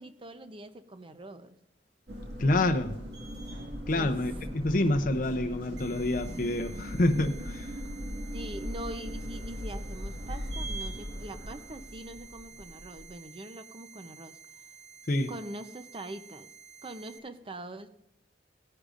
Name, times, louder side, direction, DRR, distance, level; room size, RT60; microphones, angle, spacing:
voice 1, 0.0-1.5 3.9-4.2 8.3-14.4 15.3-16.5 16.8-17.9, right 1 dB, 30° right, 0.7 m, -43 dB
sound 1, 2.1-13.1, equal, 65° right, 2.0 m, -39 dB
voice 2, 2.4-3.0 3.9-7.7 15.1-15.3, left 1 dB, 50° left, 0.7 m, -27 dB
sound 2, 5.8-17.2, right 8 dB, 85° right, 1.0 m, -52 dB
17.0 x 9.9 x 2.6 m
head